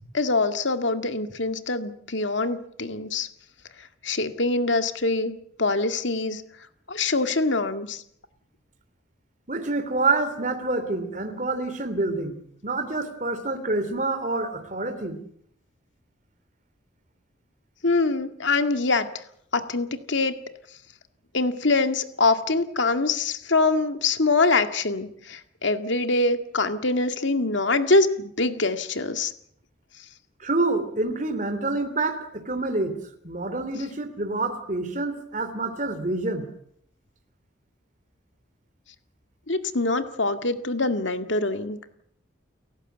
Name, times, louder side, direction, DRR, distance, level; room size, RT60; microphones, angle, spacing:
voice 1, 0.1-3.3 4.0-6.4 6.9-8.0 17.8-19.1 19.5-20.4 21.3-29.3 39.5-41.8, left 3 dB, 70° left, 8 dB, 2.0 m, -24 dB
voice 2, 9.5-15.2 30.4-33.0 33.2-36.5, right 2 dB, 40° right, 9 dB, 3.1 m, -27 dB
30.0 x 15.0 x 8.1 m, 0.69 s
head